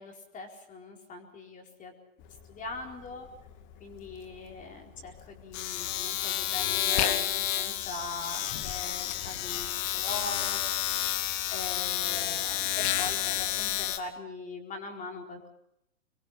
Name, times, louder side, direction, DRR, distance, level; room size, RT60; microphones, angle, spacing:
voice 1, 0.0-1.9 2.5-3.3 3.8-9.7 9.9-10.6 11.5-15.5, left 3 dB, 20° left, 2 dB, 4.5 m, -41 dB
Domestic sounds home sounds, 2.2-2.4 2.7-14.0, left 12 dB, 35° left, 2.3 m, -30 dB
26.5 x 22.5 x 5.8 m, 0.77 s
hypercardioid pair, 130°, 40 cm